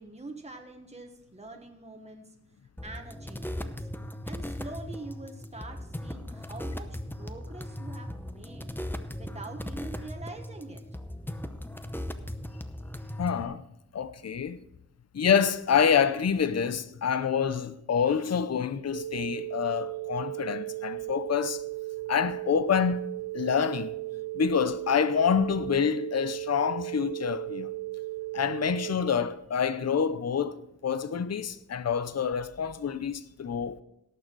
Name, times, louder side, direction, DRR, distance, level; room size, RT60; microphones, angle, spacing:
voice 1, 0.0-2.3 2.8-3.9 4.2-8.7 9.1-10.8, right 2 dB, 20° right, 1.4 m, -44 dB
sound 1, 2.8-13.4, left 1 dB, 5° left, 0.7 m, -38 dB
voice 2, 13.2-13.6 13.9-14.6 15.1-21.6 22.1-23.0 23.3-23.9 24.3-27.7 28.3-33.8, left 7 dB, 55° left, 0.6 m, -27 dB
sound 2, 18.9-28.9, right 18 dB, 30° left, 1.4 m, -36 dB
18.0 x 6.7 x 4.6 m
wide cardioid pair, 85°, 30 cm